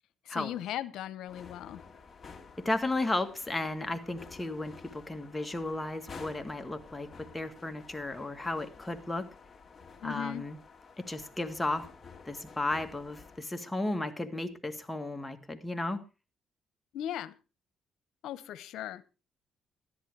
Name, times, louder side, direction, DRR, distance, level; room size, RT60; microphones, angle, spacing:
voice 1, 0.3-1.8 10.0-10.4 16.9-17.3 18.2-19.0, left 11 dB, 80° left, 15 dB, 0.9 m, -38 dB
sound 1, 1.3-13.4, left 5 dB, 30° left, 2.6 m, -51 dB
voice 2, 2.6-9.3 10.0-10.6 11.0-11.8 12.2-16.0, left 2 dB, 10° left, 6 dB, 1.8 m, -34 dB
13.5 x 10.5 x 4.8 m, 0.31 s
cardioid pair, 90°, 0 cm